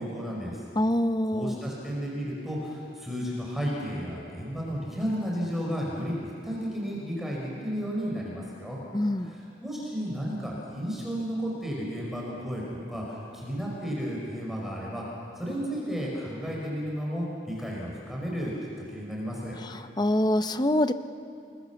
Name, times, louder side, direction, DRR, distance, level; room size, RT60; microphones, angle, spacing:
voice 1, 0.0-0.6 1.3-8.8 9.2-12.6 12.9-15.0 15.4-18.5 18.9-19.6, equal, ahead, -4 dB, 5.2 m, -33 dB
voice 2, 0.8-1.6 8.9-9.3 19.6-20.9, left 1 dB, 25° left, 10 dB, 0.8 m, -25 dB
29.0 x 22.0 x 7.1 m, 2.7 s
head